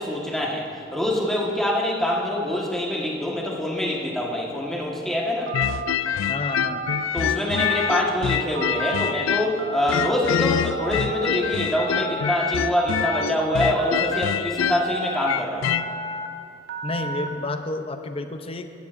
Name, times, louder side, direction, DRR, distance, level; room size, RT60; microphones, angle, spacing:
voice 1, 0.0-5.5 7.1-15.7, left 1 dB, ahead, -3 dB, 1.3 m, -25 dB
sound 1, 5.5-9.6 9.9-15.9, left 9 dB, 85° left, 0.3 m, -25 dB
Telephone, 5.5-5.9 6.5-7.0 7.5-8.1 8.6-9.1 9.6-10.2 10.7-11.3 11.8-12.3 12.8-13.3 13.8-14.3 14.7-15.3 15.7-16.3 16.7-17.3, right 3 dB, 65° right, 0.8 m, -32 dB
voice 2, 6.3-6.9 16.8-18.7, left 2 dB, 30° left, 7 dB, 0.5 m, -30 dB
14.5 x 12.0 x 2.5 m, 2.6 s
head